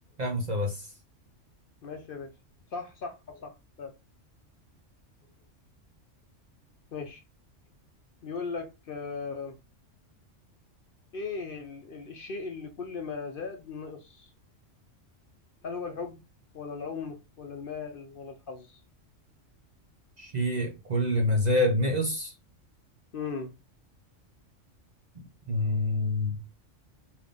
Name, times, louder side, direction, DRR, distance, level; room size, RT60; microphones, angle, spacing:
voice 1, 0.2-0.9 20.2-22.3 25.5-26.4, left 1 dB, 45° right, 0.6 m, -27 dB
voice 2, 1.8-2.3 2.7-3.9 6.9-7.2 8.2-9.6 11.1-14.3 15.6-16.2 16.5-18.8 23.1-23.5, left 5 dB, 55° left, 0.7 m, -38 dB
3.7 x 2.5 x 3.5 m
omnidirectional pair, 1.3 m